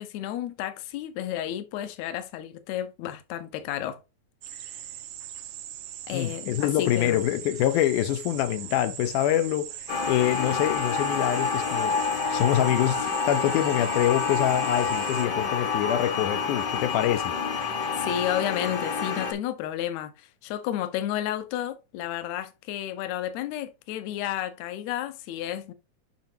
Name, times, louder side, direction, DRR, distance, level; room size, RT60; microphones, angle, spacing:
voice 1, 0.0-4.0 4.5-4.8 6.1-7.2 18.0-25.7, left 11 dB, 75° left, 1.9 m, -32 dB
sound 1, 4.4-15.3, right 12 dB, 85° right, 2.3 m, -40 dB
voice 2, 6.1-9.7 10.1-12.0 12.3-17.4, left 12 dB, 90° left, 2.2 m, -25 dB
sound 2, 9.9-19.3, left 5 dB, 55° left, 1.2 m, -28 dB
7.4 x 5.7 x 2.8 m
omnidirectional pair, 3.5 m